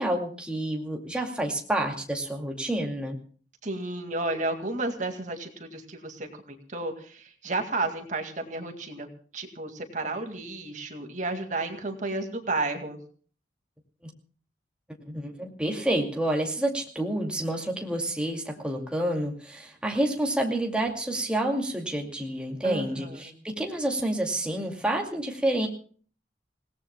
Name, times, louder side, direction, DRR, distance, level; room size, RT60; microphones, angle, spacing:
voice 1, 0.0-3.2 14.0-14.1 15.1-25.7, right 1 dB, 5° right, 0 dB, 2.4 m, -29 dB
voice 2, 3.6-9.1 9.3-13.0 22.6-23.3, right 2 dB, 40° right, 5 dB, 2.2 m, -32 dB
29.0 x 18.0 x 2.2 m, 0.43 s
head